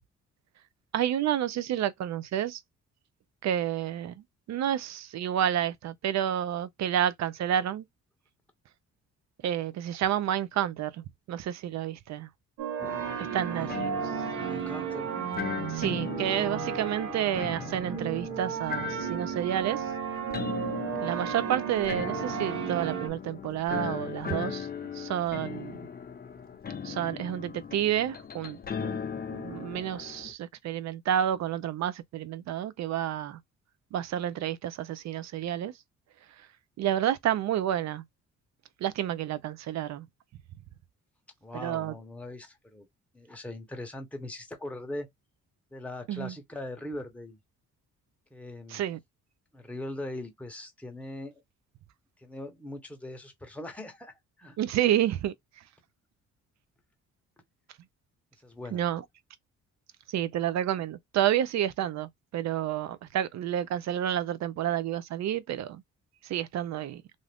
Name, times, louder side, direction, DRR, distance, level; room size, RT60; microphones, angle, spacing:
voice 1, 0.9-2.6 3.4-7.8 9.4-12.3 13.3-13.9 15.7-19.8 21.0-24.7 24.9-25.8 26.8-29.0 29.3-33.4 33.9-35.7 36.8-38.0 38.8-40.1 41.5-41.9 46.1-46.3 48.7-49.0 54.6-55.3 58.7-59.0 60.1-65.8 66.2-67.0, right 11 dB, 65° right, 0.5 m, -30 dB
sound 1, 12.6-23.1, right 8 dB, 90° right, 0.9 m, -34 dB
sound 2, 12.8-30.3, left 7 dB, 30° left, 0.6 m, -38 dB
voice 2, 14.4-15.1 41.4-42.9 43.1-45.1 45.7-47.4 48.3-48.8 49.5-51.4 52.2-54.6 58.4-58.8, left 1 dB, 5° left, 0.9 m, -40 dB
2.6 x 2.4 x 3.4 m
cardioid pair, 90°, 30 cm